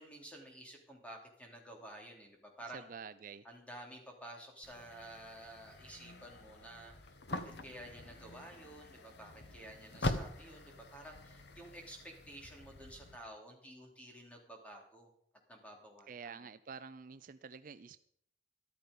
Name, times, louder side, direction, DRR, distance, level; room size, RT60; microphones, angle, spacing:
voice 1, 0.0-2.8 3.4-15.1 15.5-16.4, right 1 dB, 5° left, 1 dB, 3.0 m, -52 dB
voice 2, 2.7-3.5 16.1-18.0, right 5 dB, 45° right, 12 dB, 0.4 m, -48 dB
sound 1, 4.6-13.2, left 1 dB, 65° left, 1.1 m, -44 dB
13.5 x 12.5 x 5.3 m, 0.69 s
head